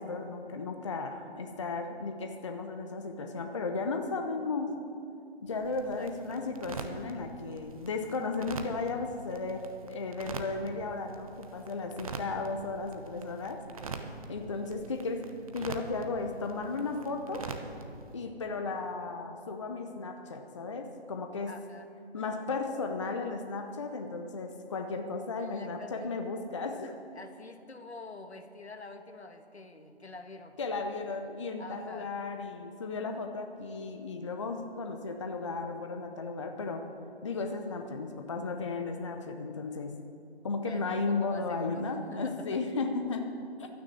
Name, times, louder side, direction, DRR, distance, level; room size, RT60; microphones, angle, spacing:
voice 1, 0.0-4.8 5.4-13.6 14.3-15.3 15.5-17.5 18.1-21.6 22.1-27.0 30.6-37.0 37.2-40.0 40.4-43.7, left 3 dB, 30° left, 5 dB, 0.7 m, -35 dB
sound 1, 5.5-18.2, right 4 dB, 35° right, 1.0 m, -44 dB
voice 2, 6.0-6.6 21.5-21.9 25.4-26.2 27.1-30.6 31.6-32.1 40.6-42.6, left 3 dB, 75° left, 7 dB, 1.4 m, -47 dB
12.5 x 9.6 x 8.3 m, 2.5 s
figure-of-eight pair, 145°, 33 cm